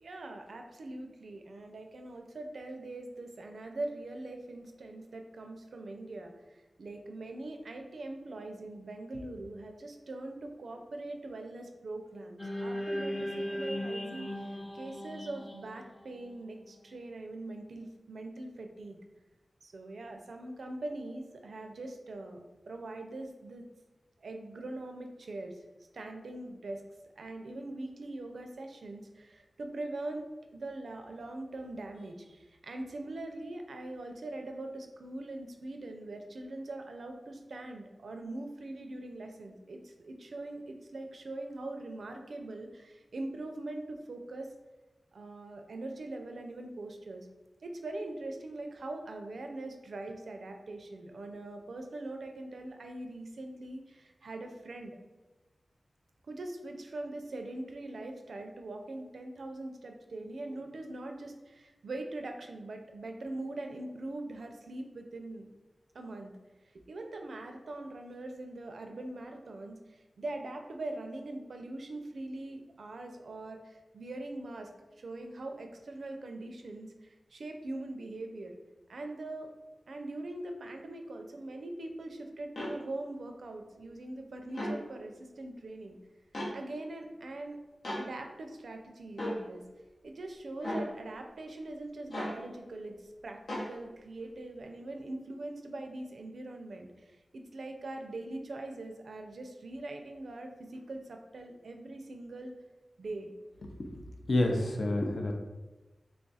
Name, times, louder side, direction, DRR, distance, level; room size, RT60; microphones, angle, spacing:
voice 1, 0.0-19.0 19.6-23.7 24.2-25.6 25.9-26.8 27.2-44.5 45.1-47.3 47.6-55.0 56.3-65.5 65.9-66.3 66.7-74.7 75.0-78.6 78.9-79.5 79.9-86.0 86.5-87.6 88.0-89.7 90.0-93.0 93.2-102.5 103.0-103.3, right 2 dB, 80° right, 4 dB, 0.4 m, -42 dB
sound 1, 12.4-16.7, equal, 20° left, 0.6 m, -37 dB
sound 2, 82.6-82.7 84.5-84.8 86.3-86.5 87.8-88.0 89.2-89.4 90.6-90.9 92.1-92.4 93.5-93.7, left 1 dB, 90° left, 0.9 m, -34 dB
voice 2, 104.3-105.4, left 1 dB, 65° left, 2 dB, 0.5 m, -28 dB
3.4 x 2.4 x 4.0 m, 1.1 s
wide cardioid pair, 100°, 0 cm